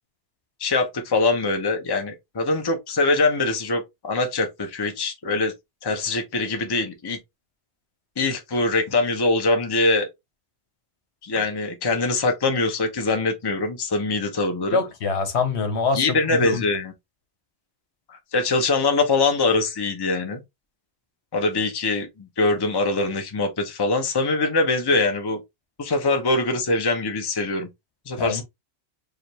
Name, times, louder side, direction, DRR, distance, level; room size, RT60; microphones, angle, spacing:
voice 1, 0.6-5.5 5.8-7.2 8.2-10.1 11.2-14.8 15.9-16.9 18.1-20.4 21.3-25.4 25.8-27.7 28.1-28.4, left 3 dB, 25° left, 0.7 m, -23 dB
voice 2, 14.7-16.6 28.2-28.4, left 4 dB, 70° left, 1.2 m, -25 dB
4.9 x 2.5 x 2.9 m
omnidirectional pair, 1.2 m